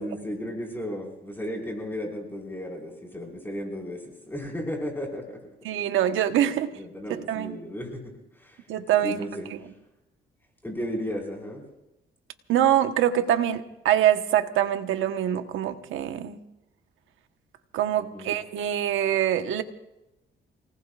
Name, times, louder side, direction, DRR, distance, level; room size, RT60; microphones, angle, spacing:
voice 1, 0.0-5.4 6.3-6.4 6.8-8.7 9.0-9.7 10.6-11.7 18.0-18.4, equal, 10° left, 0 dB, 5.1 m, -35 dB
voice 2, 5.6-6.7 7.1-7.6 8.7-9.2 12.5-16.4 17.7-19.6, right 11 dB, 85° right, 8 dB, 1.3 m, -24 dB
29.5 x 19.0 x 2.5 m, 0.95 s
cardioid pair, 90°, 20 cm